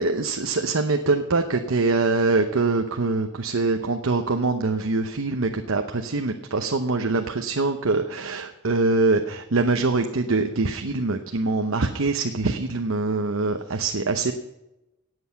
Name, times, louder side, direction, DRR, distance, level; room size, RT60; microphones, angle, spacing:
voice 1, 0.0-14.3, right 3 dB, 75° right, 5 dB, 0.9 m, -24 dB
18.0 x 7.9 x 5.8 m, 0.95 s
head